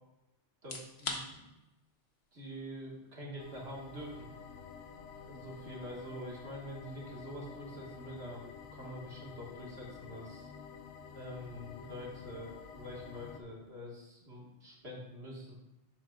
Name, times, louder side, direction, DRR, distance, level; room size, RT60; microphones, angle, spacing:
sound 1, 0.5-15.4, left 3 dB, 65° left, 1.3 m, -52 dB
voice 1, 0.6-1.5 2.3-4.3 5.3-10.5 11.1-15.6, equal, 65° right, -2 dB, 2.1 m, -45 dB
sound 2, 3.4-13.4, left 6 dB, 85° left, 1.1 m, -50 dB
10.5 x 7.6 x 2.5 m, 0.97 s
omnidirectional pair, 1.2 m